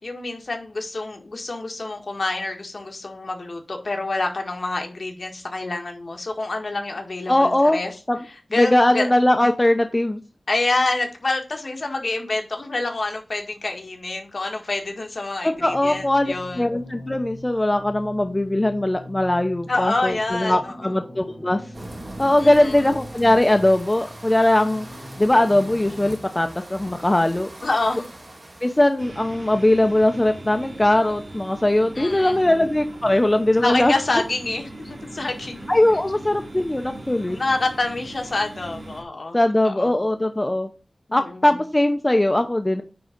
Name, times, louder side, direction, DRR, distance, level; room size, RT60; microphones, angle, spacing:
voice 1, 0.0-7.9 8.5-9.1 10.5-16.7 19.7-21.0 22.4-22.8 27.6-28.1 32.0-32.5 33.6-35.7 36.4-36.5 37.3-39.4 39.6-40.0 41.1-41.5, left 2 dB, 65° left, 3 dB, 1.8 m, -27 dB
voice 2, 7.3-7.8 8.1-8.2 8.6-10.2 15.4-21.6 22.2-24.9 25.2-27.5 28.6-33.9 35.7-37.4 39.3-40.7 41.1-42.8, left 1 dB, 25° left, 7 dB, 0.7 m, -20 dB
sound 1, 15.5-26.1, left 1 dB, 40° left, 5.2 m, -41 dB
sound 2, 21.7-29.1, right 1 dB, 55° right, 2.6 m, -41 dB
sound 3, 29.0-39.0, right 2 dB, 90° right, 2.8 m, -40 dB
9.5 x 3.8 x 5.2 m, 0.34 s
wide cardioid pair, 70°, 0 cm